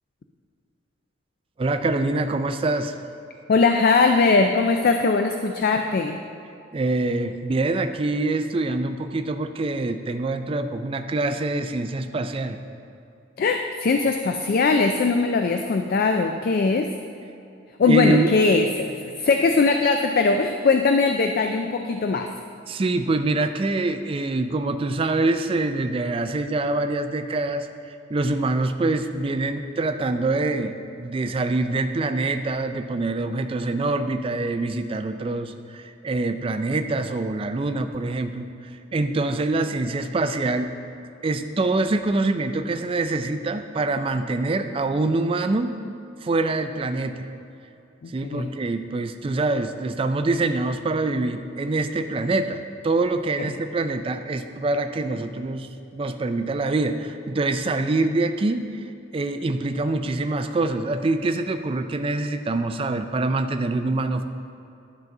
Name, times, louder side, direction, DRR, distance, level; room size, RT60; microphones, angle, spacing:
voice 1, 1.6-3.0 6.7-12.6 17.9-18.3 22.7-40.7 41.2-45.8 46.2-47.3 48.1-58.8 59.1-64.2, right 2 dB, 30° right, 9 dB, 0.3 m, -25 dB
voice 2, 3.5-6.2 13.4-16.9 17.8-22.3 48.0-48.5 53.4-53.5, left 4 dB, 50° left, 5 dB, 0.3 m, -20 dB
10.5 x 4.0 x 5.9 m, 2.6 s
head